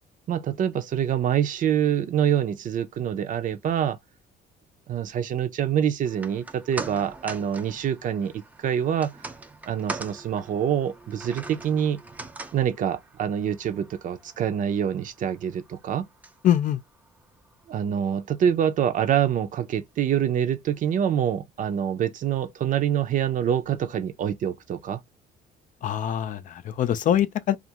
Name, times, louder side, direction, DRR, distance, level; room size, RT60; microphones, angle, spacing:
voice 1, 0.3-4.0 4.9-9.1 9.7-12.0 12.5-16.0 17.7-25.0, right 9 dB, 50° right, 0.6 m, -25 dB
sound 1, 6.0-18.4 18.8-18.9, right 2 dB, 10° right, 0.5 m, -42 dB
voice 2, 16.4-16.8 25.8-27.6, left 10 dB, 50° left, 0.4 m, -23 dB
2.5 x 2.4 x 2.9 m
cardioid pair, 110°, 17 cm